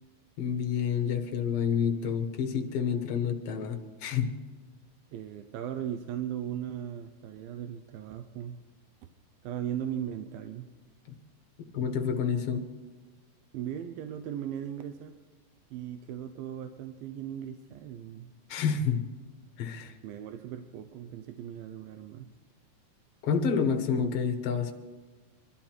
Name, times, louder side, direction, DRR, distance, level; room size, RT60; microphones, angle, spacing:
voice 1, 0.4-4.3 11.1-11.2 11.7-12.6 18.5-19.0 19.6-19.9 23.2-24.7, left 6 dB, 60° left, 5 dB, 1.6 m, -29 dB
voice 2, 5.1-8.6 9.4-10.7 13.5-15.1 15.7-18.3 20.0-22.3, right 10 dB, 80° right, 9 dB, 2.5 m, -38 dB
23.5 x 12.5 x 4.5 m, 1.4 s
omnidirectional pair, 4.3 m